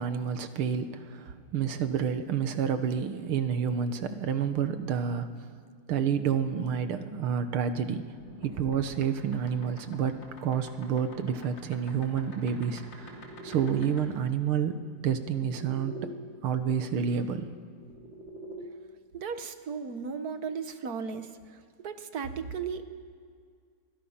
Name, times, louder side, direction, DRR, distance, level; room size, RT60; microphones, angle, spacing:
voice 1, 0.0-5.3 5.9-8.0 8.4-13.1 13.4-16.1 16.4-17.5, right 7 dB, 80° right, 9 dB, 2.1 m, -29 dB
sound 1, 8.2-16.1 17.4-18.6, right 1 dB, 60° left, 3.5 m, -46 dB
voice 2, 19.1-22.8, right 6 dB, 50° right, 9 dB, 1.4 m, -36 dB
27.0 x 22.5 x 5.8 m, 2.1 s
omnidirectional pair, 2.3 m